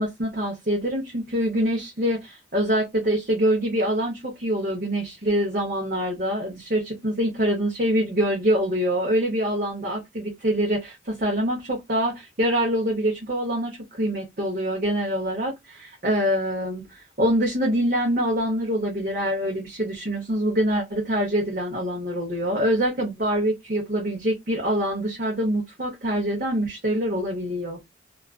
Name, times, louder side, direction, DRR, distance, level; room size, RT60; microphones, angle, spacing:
voice 1, 0.0-27.8, equal, 45° right, 0.7 m, -25 dB
2.4 x 2.3 x 2.2 m
head